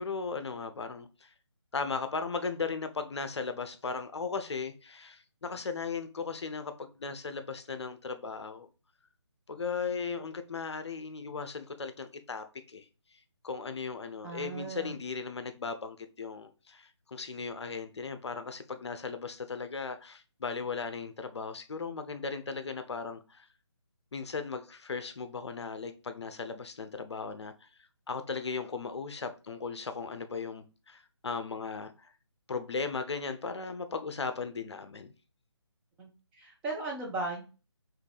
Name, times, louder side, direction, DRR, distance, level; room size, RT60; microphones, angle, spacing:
voice 1, 0.0-1.3 1.7-8.7 9.5-12.9 13.4-23.5 24.1-27.7 28.1-32.1 32.5-35.1, left 4 dB, 65° left, 0.7 m, -37 dB
voice 2, 14.2-14.9 36.0-36.1 36.4-37.4, right 2 dB, 10° right, 0.6 m, -36 dB
5.8 x 2.5 x 3.3 m
figure-of-eight pair, 160°, 15 cm